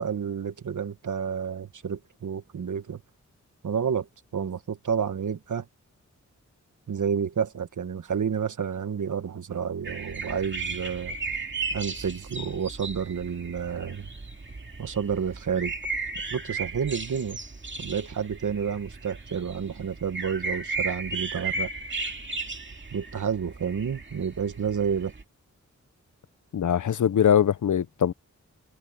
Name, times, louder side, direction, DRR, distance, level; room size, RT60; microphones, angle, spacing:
voice 1, 0.0-3.0 3.6-4.1 4.3-5.6 6.9-11.2 11.7-14.1 14.8-15.7 16.3-17.4 17.8-21.7 22.9-25.1, right 7 dB, 80° right, 1.3 m, -30 dB
sound 1, 9.8-25.2, right 3 dB, 40° right, 2.4 m, -35 dB
voice 2, 26.5-28.1, left 9 dB, 75° left, 0.7 m, -22 dB
wide cardioid pair, 75°, 30 cm